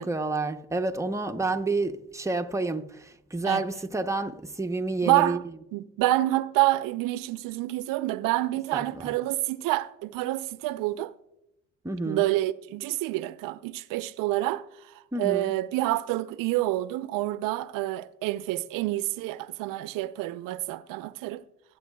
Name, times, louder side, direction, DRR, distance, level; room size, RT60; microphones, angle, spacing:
voice 1, 0.0-5.4 8.7-9.1 11.8-12.2 15.1-15.5, right 3 dB, 10° right, 0.8 m, -29 dB
voice 2, 5.0-5.4 5.7-11.1 12.0-14.6 15.2-21.4, right 17 dB, 65° right, 0.7 m, -27 dB
22.5 x 8.4 x 2.3 m
hypercardioid pair, 70°, 35 cm